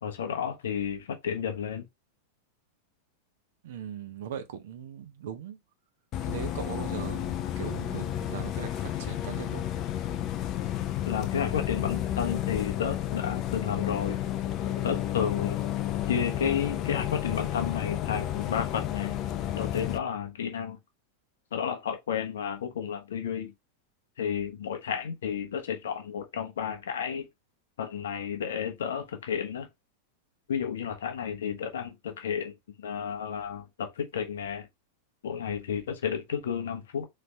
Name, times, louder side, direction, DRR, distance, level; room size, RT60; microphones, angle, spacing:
voice 1, 0.0-1.9 11.0-14.3 14.8-15.6 16.1-19.2 19.6-20.8 21.5-23.5 24.2-27.3 27.8-29.7 30.5-34.7 35.2-37.1, left 7 dB, 60° left, 1.0 m, -32 dB
voice 2, 3.6-5.6 6.3-9.7, right 8 dB, 55° right, 0.8 m, -39 dB
Bus, 6.1-20.0, left 12 dB, 35° left, 0.6 m, -31 dB
4.1 x 3.2 x 3.2 m
figure-of-eight pair, 90°, 0 cm